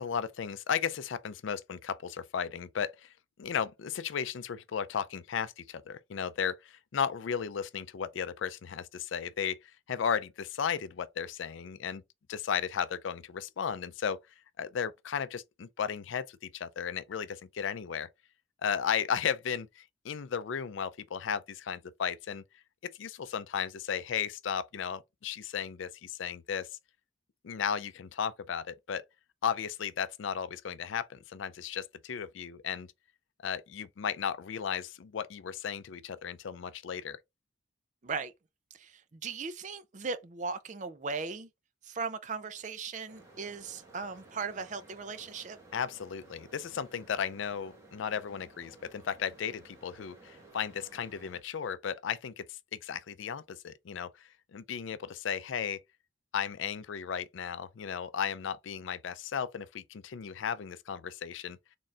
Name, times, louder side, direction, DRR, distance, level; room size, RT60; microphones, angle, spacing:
voice 1, 0.0-3.1 3.4-9.6 9.9-12.0 12.3-14.2 14.6-18.1 18.6-22.4 22.8-26.7 27.4-29.0 29.4-32.9 33.4-37.2 45.7-55.8 56.3-61.6, left 7 dB, 75° left, 0.4 m, -35 dB
voice 2, 38.0-38.3 38.7-41.5 41.8-45.6, right 4 dB, 40° right, 0.5 m, -38 dB
sound 1, 43.1-51.4, right 2 dB, 15° right, 1.3 m, -56 dB
4.2 x 3.6 x 2.4 m
head